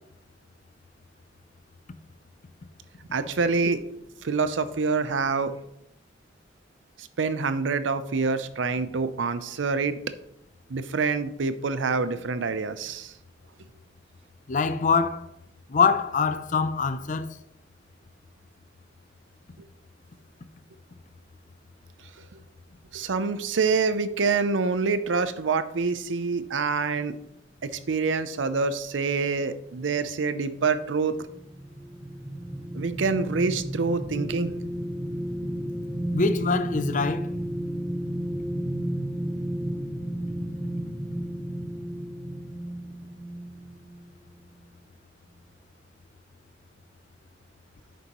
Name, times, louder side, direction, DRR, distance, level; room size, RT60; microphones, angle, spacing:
voice 1, 3.1-3.8 4.2-5.6 7.0-10.0 10.7-13.1 22.9-27.2 27.6-31.3 32.7-34.6, right 4 dB, 80° right, 0.6 m, -26 dB
voice 2, 14.5-15.3 15.7-17.3 36.1-37.3, left 5 dB, 45° left, 0.5 m, -24 dB
sound 1, 31.1-44.0 44.5-44.6, right 1 dB, 10° right, 0.9 m, -32 dB
9.1 x 6.8 x 3.0 m
head